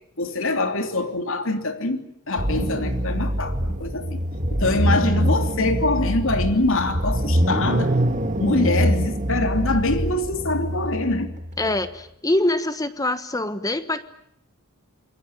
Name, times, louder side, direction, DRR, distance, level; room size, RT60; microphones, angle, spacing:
voice 1, 0.2-4.2 4.6-8.0 8.4-11.3, left 2 dB, 65° left, 3.1 m, -24 dB
sound 1, 2.4-11.8, equal, 35° right, 2.1 m, -24 dB
voice 2, 11.6-14.0, left 1 dB, 15° left, 1.3 m, -24 dB
27.5 x 23.0 x 9.0 m
head